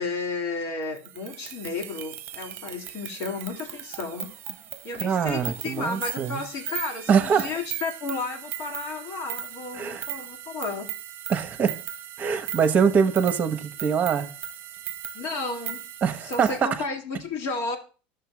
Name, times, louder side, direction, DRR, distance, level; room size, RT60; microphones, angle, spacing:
voice 1, 0.0-4.3 4.8-10.9 15.1-15.8 16.2-17.8, left 3 dB, 60° left, 2.2 m, -33 dB
sound 1, 1.0-16.6, right 11 dB, 45° right, 0.8 m, -38 dB
voice 2, 4.9-6.4 7.1-7.5 9.7-10.1 11.3-11.8 12.2-14.3 16.0-16.8, right 6 dB, 30° right, 1.1 m, -23 dB
13.0 x 6.8 x 2.3 m
supercardioid pair, 105°, 6 cm